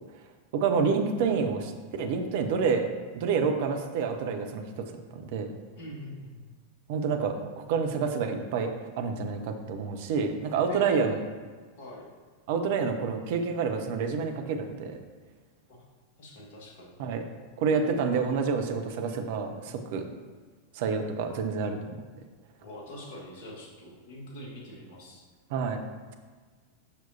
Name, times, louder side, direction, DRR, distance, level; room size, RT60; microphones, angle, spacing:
voice 1, 0.5-1.7 2.0-2.9 3.1-4.9 5.1-5.5 6.9-11.2 12.5-15.0 17.0-17.2 17.6-20.0 20.7-21.9 25.5-25.8, right 5 dB, 50° right, 5 dB, 0.6 m, -28 dB
voice 2, 5.8-6.4 10.7-11.2 11.8-12.1 15.7-15.8 16.2-16.9 22.6-25.2, left 1 dB, 50° left, -3 dB, 1.6 m, -43 dB
6.8 x 5.9 x 2.8 m, 1.5 s
figure-of-eight pair, 90°, 0 cm